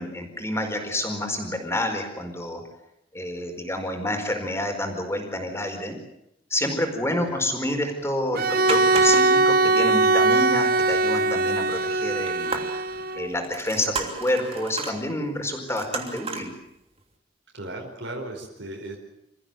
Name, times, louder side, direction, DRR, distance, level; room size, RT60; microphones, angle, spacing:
voice 1, 0.0-2.6 3.1-6.0 6.5-12.6 13.1-16.5, left 1 dB, 15° left, 4 dB, 4.8 m, -28 dB
Bowed string instrument, 8.3-13.3, right 3 dB, 55° right, 1.1 m, -21 dB
sound 1, 8.6-9.5 9.8-9.9 10.3-10.4 12.2-13.0 13.4-15.0 15.7-16.5 17.0-17.1, right 4 dB, 35° right, 3.0 m, -33 dB
voice 2, 17.5-19.0, right 1 dB, 80° right, 1 dB, 4.9 m, -36 dB
28.0 x 15.0 x 9.2 m, 0.84 s
head